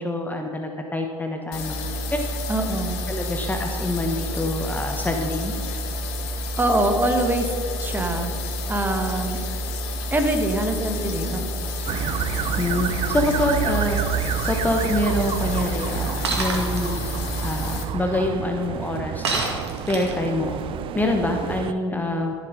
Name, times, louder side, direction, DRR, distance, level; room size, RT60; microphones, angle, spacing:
voice 1, 0.0-1.8 2.1-2.2 3.1-5.5 12.6-17.0 17.4-19.3 19.9-20.6 20.9-22.3, left 1 dB, 10° left, 3 dB, 1.1 m, -25 dB
sound 1, 1.5-17.8, left 1 dB, 55° left, 1.8 m, -29 dB
voice 2, 2.5-3.0 6.6-7.5 7.8-8.3 8.7-9.4 10.1-11.5, right 1 dB, 15° right, 4 dB, 1.7 m, -24 dB
sound 2, 11.9-21.7, right 10 dB, 40° right, 0.5 m, -29 dB
Shatter, 16.2-16.8 19.2-20.3, right 3 dB, 80° right, 2.0 m, -26 dB
14.0 x 7.4 x 5.4 m, 2.5 s
hypercardioid pair, 75°, 14 cm